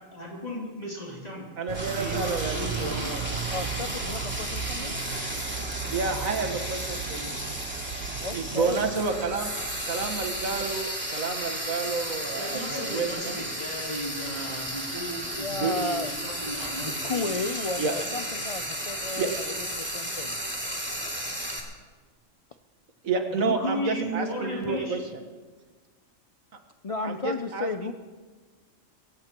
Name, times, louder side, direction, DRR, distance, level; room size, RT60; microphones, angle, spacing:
voice 1, 0.0-1.5 1.9-3.1 12.3-17.3 23.3-25.0, equal, 30° left, -4 dB, 3.0 m, -35 dB
voice 2, 1.6-3.2 5.9-7.4 8.3-9.5 9.9-13.4 15.5-15.7 16.9-17.0 17.8-17.9 19.2-19.3 23.0-25.0 27.0-27.9, right 4 dB, 90° right, 6 dB, 1.8 m, -30 dB
Frying (food), 1.7-21.6, equal, 10° right, 2.6 m, -34 dB
sound 1, 1.7-10.8, right 7 dB, 60° right, 0.8 m, -37 dB
voice 3, 3.5-5.0 8.2-8.8 15.3-16.1 16.8-19.4 19.7-20.4 26.8-27.9, left 3 dB, 65° left, 7 dB, 0.3 m, -33 dB
23.0 x 17.5 x 3.0 m, 1.4 s
omnidirectional pair, 1.4 m